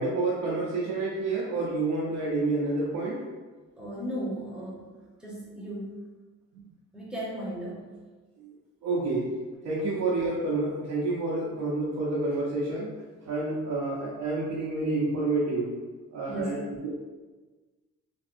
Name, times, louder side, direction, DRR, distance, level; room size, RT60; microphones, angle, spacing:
voice 1, 0.0-3.2 8.4-8.5 8.8-9.3 9.6-12.9 13.2-15.7 16.1-16.6 16.8-17.0, right 2 dB, 85° right, -7 dB, 0.8 m, -29 dB
voice 2, 3.8-4.9 5.2-6.0 6.9-7.9 16.2-16.6, equal, 5° right, -5 dB, 1.1 m, -35 dB
3.4 x 2.6 x 2.6 m, 1.3 s
cardioid pair, 90°, 30 cm